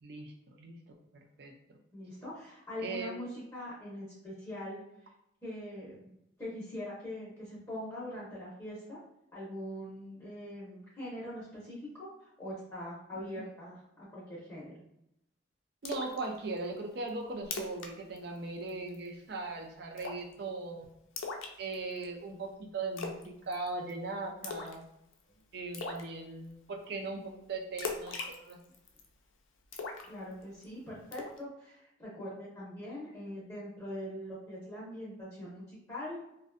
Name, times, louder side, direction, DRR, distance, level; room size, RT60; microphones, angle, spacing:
voice 1, 0.0-0.8 1.1-1.5 2.8-3.1 15.8-20.9 21.6-24.8 25.5-28.6, right 3 dB, 55° right, 1 dB, 0.4 m, -39 dB
voice 2, 1.9-4.8 5.4-6.1 6.4-9.0 9.3-14.8 30.0-36.2, left 1 dB, 15° left, -8 dB, 0.6 m, -42 dB
Splash splatter, 15.8-16.2 16.6-16.7 17.1-17.2 17.4-17.9 18.2-18.4 18.7-19.1 20.0-20.3 21.2-22.0 23.0-23.3 23.5-23.9 24.4-24.8 25.1-25.2 25.7-26.0 27.8-29.0 29.7-30.6 31.1-31.4, left 4 dB, 85° left, 0.4 m, -39 dB
2.5 x 2.1 x 2.4 m, 0.82 s
head